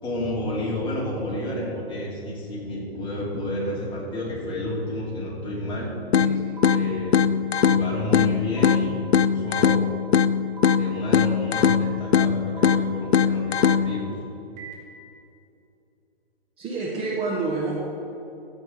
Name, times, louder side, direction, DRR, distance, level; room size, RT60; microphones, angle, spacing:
voice 1, 0.0-5.9 6.6-7.3 7.6-10.0 10.7-14.1, left 1 dB, 15° left, -5 dB, 2.6 m, -30 dB
sound 1, 6.1-14.1, left 7 dB, 80° left, 0.5 m, -21 dB
voice 2, 6.1-6.6 16.6-17.7, right 3 dB, 20° right, -5 dB, 1.4 m, -28 dB
sound 2, 6.6-6.7 7.6-7.7 8.6-8.7 9.6-9.7 10.6-10.7 11.6-11.7 12.6-12.7 13.6-13.7 14.6-14.7, right 10 dB, 40° right, 3.0 m, -37 dB
14.0 x 7.9 x 4.6 m, 2.8 s
figure-of-eight pair, 125°, 32 cm